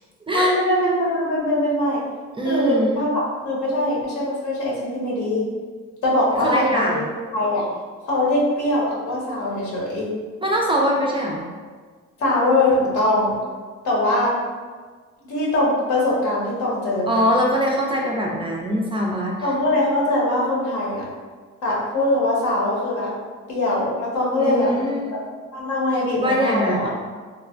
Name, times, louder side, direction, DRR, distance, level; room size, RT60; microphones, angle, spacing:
voice 1, 0.3-2.0 2.4-5.5 6.0-7.0 7.3-7.7 8.1-10.1 12.2-13.3 13.8-14.3 15.2-17.2 19.4-21.1 21.6-23.1 23.5-25.2 25.5-26.9, left 1 dB, 70° left, -5 dB, 1.0 m, -22 dB
voice 2, 2.4-3.0 6.3-7.1 10.4-11.5 17.1-19.5 24.4-25.0 26.2-26.9, equal, 20° right, -2 dB, 0.3 m, -22 dB
3.1 x 2.1 x 2.4 m, 1.5 s
cardioid pair, 90°, 30 cm